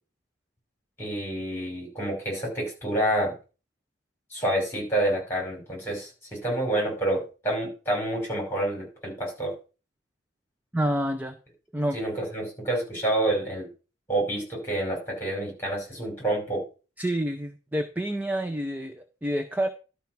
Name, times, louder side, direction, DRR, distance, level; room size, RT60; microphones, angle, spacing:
voice 1, 1.0-3.3 4.3-9.5 11.9-13.7 14.1-16.6, right 1 dB, 10° left, 0 dB, 5.1 m, -28 dB
voice 2, 10.7-11.3 11.7-12.0 17.0-19.7, right 1 dB, 10° right, 7 dB, 0.6 m, -28 dB
12.0 x 4.6 x 5.9 m, 0.34 s
head